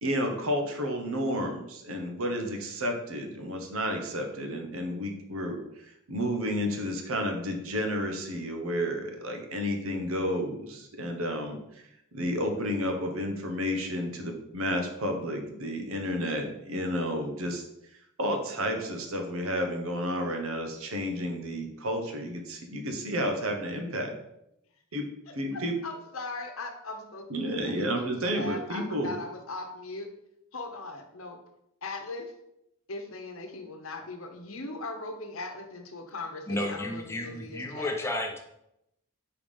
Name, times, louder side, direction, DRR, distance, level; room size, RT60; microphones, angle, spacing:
voice 1, 0.0-5.6 6.1-11.6 12.1-17.7 18.2-24.1 24.9-25.1 25.3-25.7 27.3-29.1, equal, 70° right, 3 dB, 1.1 m, -31 dB
voice 2, 25.5-30.1 30.5-31.4 31.8-32.3 32.9-38.0, left 2 dB, 65° left, 4 dB, 1.0 m, -39 dB
voice 3, 36.5-38.4, left 1 dB, 10° left, 1 dB, 1.0 m, -32 dB
5.1 x 4.7 x 5.4 m, 0.81 s
head